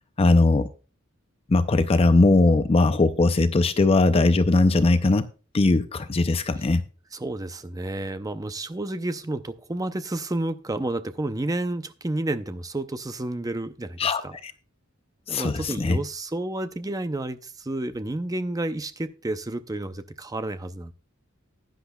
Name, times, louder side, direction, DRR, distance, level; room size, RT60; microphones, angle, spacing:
voice 1, 0.2-0.7 1.5-5.3 5.5-6.8 14.0-14.5 15.3-16.0, left 2 dB, 30° left, 11 dB, 0.5 m, -20 dB
voice 2, 7.1-14.4 15.3-20.9, right 2 dB, 20° right, 11 dB, 0.6 m, -30 dB
15.5 x 10.0 x 2.3 m, 0.35 s
head